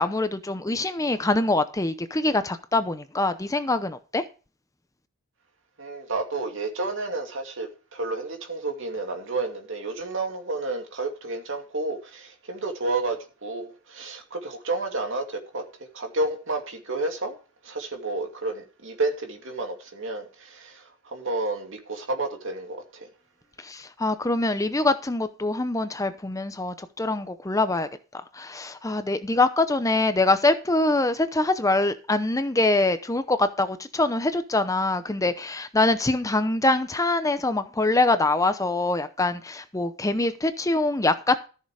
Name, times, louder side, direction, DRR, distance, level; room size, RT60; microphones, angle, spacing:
voice 1, 0.0-4.2 23.6-27.9 28.3-41.5, left 2 dB, 15° left, 0.7 m, -24 dB
voice 2, 5.8-15.6 15.9-17.4 17.6-23.1, right 2 dB, 60° right, 2.7 m, -31 dB
14.0 x 6.7 x 4.9 m
head